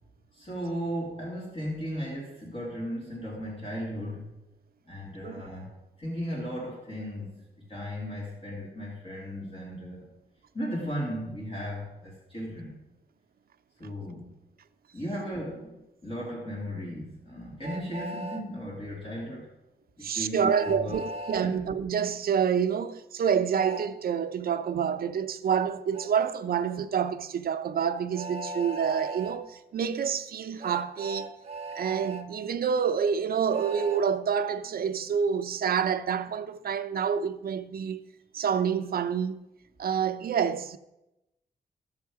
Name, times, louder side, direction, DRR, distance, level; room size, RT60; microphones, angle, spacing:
voice 1, 0.3-4.3 4.9-5.7 6.0-7.4 7.7-10.1 10.5-12.7 13.8-14.3 14.9-19.5 20.0-21.6, equal, 35° left, 2.3 m, -36 dB
Train, 17.6-18.4 20.5-21.5 23.5-23.9 25.9-26.1 28.1-29.4 30.6-32.2 33.5-34.0, right 2 dB, 40° right, 0.9 m, -37 dB
voice 2, 20.0-21.0 21.3-31.3 31.7-38.0 38.3-39.4 39.8-40.8, right 7 dB, 65° right, 0.6 m, -28 dB
14.0 x 6.4 x 4.8 m
wide cardioid pair, 125°, 17 cm